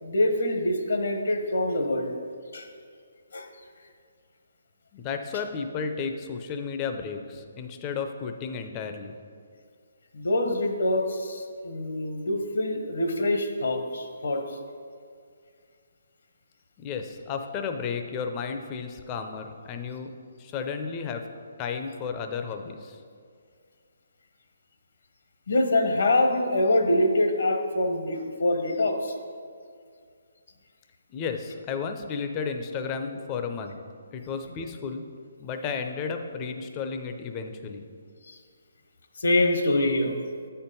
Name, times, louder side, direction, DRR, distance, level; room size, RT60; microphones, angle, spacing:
voice 1, 0.0-2.1 2.5-2.7 3.3-3.5 10.1-14.6 25.5-29.1 38.3-38.4 39.2-40.2, left 1 dB, 70° left, 4 dB, 1.0 m, -25 dB
voice 2, 4.9-9.2 16.8-21.3 21.6-23.0 31.1-33.8 34.1-35.1 35.4-37.9, left 5 dB, 25° left, 6 dB, 0.5 m, -33 dB
8.1 x 4.5 x 5.3 m, 2.2 s
hypercardioid pair, 155°, 0 cm